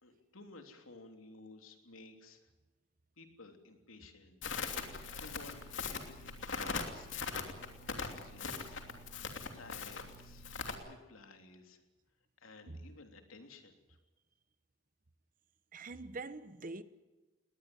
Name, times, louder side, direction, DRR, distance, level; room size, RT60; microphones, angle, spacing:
voice 1, 0.0-2.5 3.2-7.2 7.8-9.1 9.5-10.5 10.8-11.8 12.4-14.0, left 3 dB, 90° left, 3.3 m, -55 dB
Crackle, 4.4-10.7, left 4 dB, 65° left, 2.9 m, -41 dB
voice 2, 15.7-16.8, right 3 dB, 40° right, 1.1 m, -44 dB
20.0 x 20.0 x 9.4 m
head